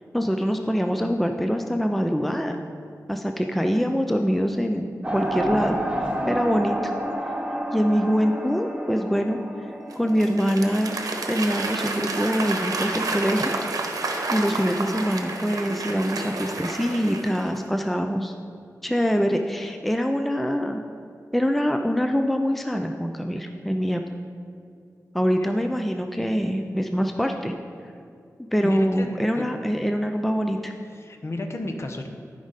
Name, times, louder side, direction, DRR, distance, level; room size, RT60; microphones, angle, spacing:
voice 1, 0.1-2.6 3.1-5.8 6.3-6.9 7.7-9.4 10.0-11.0 11.3-13.6 14.3-18.3 18.8-20.8 21.3-24.0 25.1-27.5 28.5-30.7, equal, ahead, 5 dB, 0.4 m, -24 dB
sound 1, 5.0-11.1, right 1 dB, 15° right, 1.0 m, -30 dB
Applause / Crowd, 9.9-17.7, right 3 dB, 80° right, 0.9 m, -30 dB
voice 2, 28.6-29.6 30.9-32.1, left 1 dB, 45° left, 4 dB, 0.8 m, -33 dB
13.0 x 5.1 x 4.0 m, 2.5 s
wide cardioid pair, 100°, 6 cm